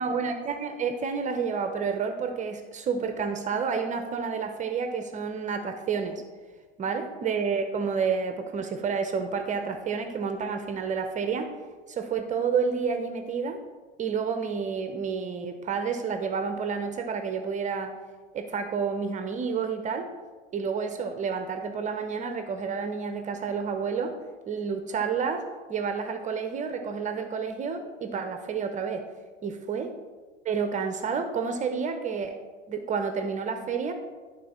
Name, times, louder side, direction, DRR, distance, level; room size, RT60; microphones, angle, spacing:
voice 1, 0.0-6.2 6.8-11.5 11.9-13.6 14.0-17.9 18.3-20.1 20.5-24.2 24.5-29.0 29.4-29.9 30.4-32.4 32.7-33.9, right 5 dB, 20° right, 6 dB, 0.5 m, -30 dB
11.0 x 3.7 x 4.2 m, 1.4 s
hypercardioid pair, 100°, 34 cm